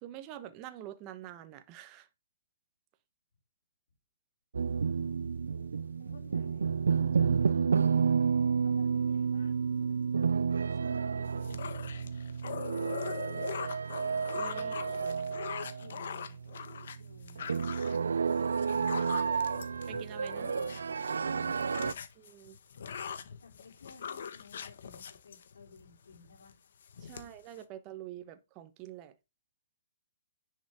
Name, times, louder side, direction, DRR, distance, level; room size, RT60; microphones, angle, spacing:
voice 1, 0.0-2.1 10.8-11.6 14.3-14.8 19.9-20.5 22.2-22.6 27.0-29.1, right 12 dB, 20° right, 1.0 m, -47 dB
sound 1, 4.5-21.9, right 6 dB, 85° right, 0.3 m, -31 dB
voice 2, 6.0-7.7 8.6-10.4 14.5-16.4 17.0-17.4 20.4-21.6 22.0-22.1 23.4-26.6, left 5 dB, 80° left, 3.9 m, -57 dB
sound 2, 11.3-21.1 21.4-25.8 26.3-26.5 26.8-27.6, left 7 dB, 55° left, 1.4 m, -42 dB
10.0 x 6.7 x 3.6 m
hypercardioid pair, 160°, 0 cm